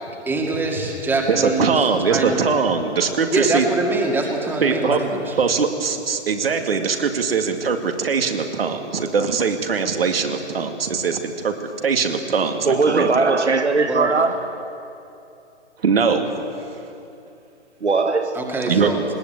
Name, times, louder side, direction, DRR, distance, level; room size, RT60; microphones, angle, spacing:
voice 1, 0.3-2.4 3.3-5.3 13.9-14.3 18.3-19.0, right 2 dB, 5° right, 1 dB, 2.2 m, -24 dB
voice 2, 1.3-3.7 4.6-5.0 5.4-11.5 11.8-13.2 15.8-16.3 18.7-19.1, right 5 dB, 55° right, 5 dB, 2.3 m, -21 dB
voice 3, 12.6-14.4 17.8-18.4, right 3 dB, 75° right, 7 dB, 1.5 m, -19 dB
20.0 x 18.5 x 9.0 m, 2.7 s
figure-of-eight pair, 130°, 34 cm